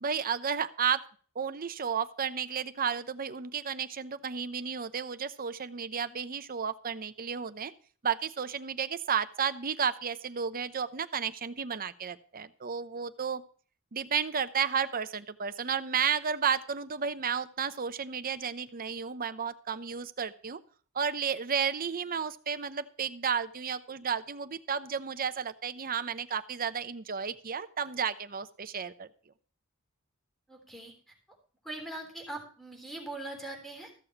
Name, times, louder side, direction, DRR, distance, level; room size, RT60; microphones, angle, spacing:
voice 1, 0.0-1.0 1.3-7.7 8.0-13.4 13.9-20.6 20.9-29.1, right 7 dB, 40° right, 12 dB, 0.8 m, -32 dB
voice 2, 30.5-30.9 31.6-34.0, right 2 dB, ahead, 1 dB, 3.6 m, -41 dB
14.5 x 6.9 x 5.9 m, 0.42 s
head